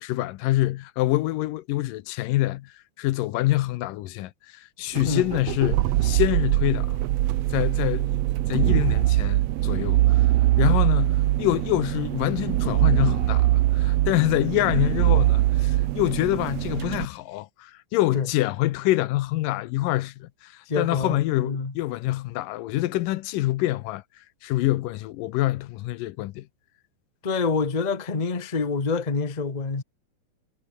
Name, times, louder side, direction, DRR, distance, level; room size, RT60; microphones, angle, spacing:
voice 1, 0.0-2.7 3.0-7.0 7.5-8.2 8.5-10.3 10.6-24.0 24.4-26.5, left 16 dB, 85° left, 2.5 m, -26 dB
sound 1, 4.9-17.0, right 15 dB, 90° right, 1.4 m, -22 dB
voice 2, 20.7-21.7 27.2-29.8, left 4 dB, 30° left, 0.8 m, -26 dB
omnidirectional pair, 3.9 m